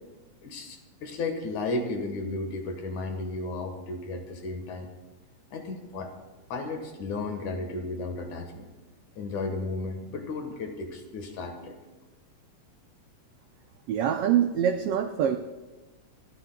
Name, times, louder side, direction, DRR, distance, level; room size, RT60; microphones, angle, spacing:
voice 1, 0.4-4.9 5.5-6.1 6.5-8.7 9.2-11.8, left 3 dB, 80° left, 5 dB, 2.9 m, -34 dB
voice 2, 13.9-15.4, right 9 dB, 75° right, 6 dB, 1.4 m, -24 dB
29.5 x 15.5 x 2.3 m, 1.2 s
omnidirectional pair, 3.4 m